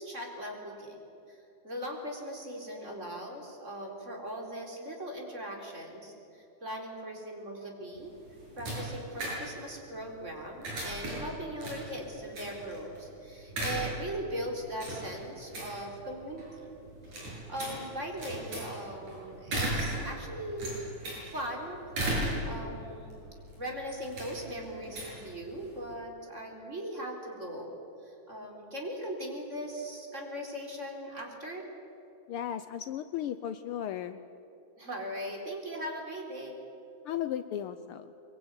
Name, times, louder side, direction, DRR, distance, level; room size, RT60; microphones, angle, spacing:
voice 1, 0.0-8.1 8.6-16.7 17.2-20.8 21.2-23.2 23.6-27.7 28.0-31.7 34.8-36.6, equal, 25° right, 1 dB, 4.0 m, -39 dB
sound 1, 7.9-25.9, right 1 dB, 80° right, 9.0 m, -38 dB
voice 2, 32.3-34.2 37.0-38.1, left 10 dB, 90° left, 11 dB, 1.2 m, -35 dB
24.0 x 22.5 x 9.7 m, 2.9 s
omnidirectional pair, 3.3 m